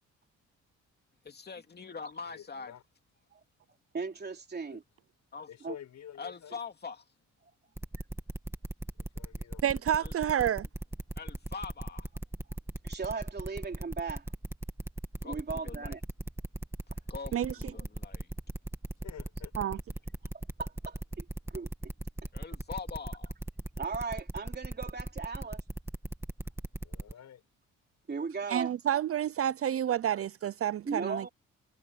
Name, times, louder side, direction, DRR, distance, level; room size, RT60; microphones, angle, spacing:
voice 1, 1.2-2.7 5.3-5.5 6.2-7.1 10.0-10.1 11.2-12.1 15.2-15.9 17.1-18.3 22.3-23.3, left 5 dB, 35° left, 2.7 m, -43 dB
voice 2, 2.3-2.8 4.7-4.8 5.5-6.6 9.0-10.0 19.0-19.5 26.8-27.4, left 10 dB, 65° left, 7.2 m, -49 dB
voice 3, 3.9-4.8 5.6-5.7 12.8-14.3 15.2-16.0 20.6-21.7 23.8-25.6 28.1-28.7 30.8-31.3, right 4 dB, 35° right, 3.5 m, -37 dB
sound 1, 7.8-27.1, right 1 dB, 10° right, 2.1 m, -38 dB
voice 4, 9.6-10.7 17.3-17.5 19.6-19.8 28.5-31.3, right 10 dB, 50° right, 0.6 m, -29 dB
cardioid pair, 90°, 30 cm